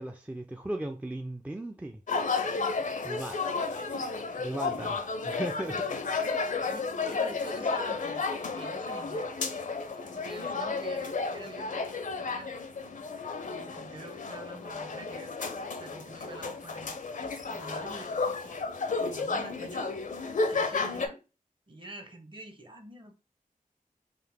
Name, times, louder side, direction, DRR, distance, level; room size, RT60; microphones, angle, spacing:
voice 1, 0.0-2.0 3.0-3.6 4.4-6.2, right 1 dB, 10° right, 0.4 m, -37 dB
sound 1, 2.1-21.1, left 4 dB, 60° left, 0.5 m, -32 dB
voice 2, 3.8-4.1 6.6-9.3 9.9-11.8 12.1-12.5 13.4-15.3 15.7-17.0 17.5-18.6 19.0-20.0 20.5-21.3 21.7-23.1, right 2 dB, 35° right, 0.9 m, -47 dB
3.8 x 2.4 x 3.4 m
wide cardioid pair, 65°, 15 cm